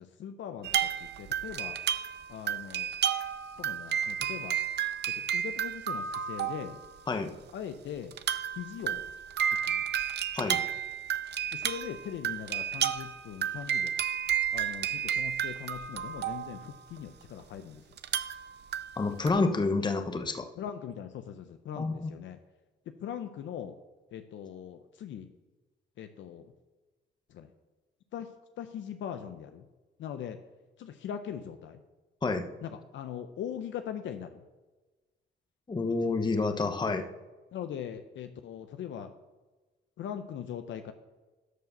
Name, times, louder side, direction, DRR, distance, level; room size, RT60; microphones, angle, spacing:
voice 1, 0.0-1.8 2.3-2.9 3.6-4.6 5.3-6.8 7.5-8.1 8.5-9.0 9.4-9.8 11.5-13.9 14.5-17.8 20.6-22.4 23.0-23.7 24.1-25.3 26.0-26.5 27.3-27.5 28.1-28.3 28.6-29.6 30.0-30.4 30.8-31.8 32.6-34.4 37.5-39.1 40.0-40.9, left 9 dB, 70° left, 8 dB, 0.7 m, -40 dB
sound 1, 0.6-7.0 7.5-7.6 8.1-17.2 18.0-19.3, right 9 dB, 60° right, 0.6 m, -32 dB
voice 2, 19.0-20.5 21.8-22.1 32.2-32.5 35.7-37.1, left 3 dB, 20° left, 7 dB, 0.9 m, -29 dB
11.0 x 4.7 x 6.6 m, 1.2 s
cardioid pair, 90°, 20 cm